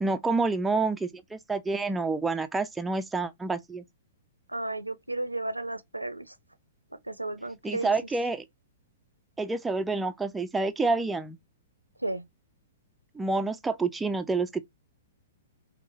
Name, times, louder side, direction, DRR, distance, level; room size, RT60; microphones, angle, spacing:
voice 1, 0.0-3.8 7.6-8.4 9.4-11.4 13.2-14.6, right 3 dB, 10° right, 0.3 m, -28 dB
voice 2, 4.5-6.4 7.0-7.9 12.0-12.2, right 2 dB, 85° right, 0.5 m, -33 dB
4.4 x 2.0 x 2.9 m
figure-of-eight pair, 110°, 0 cm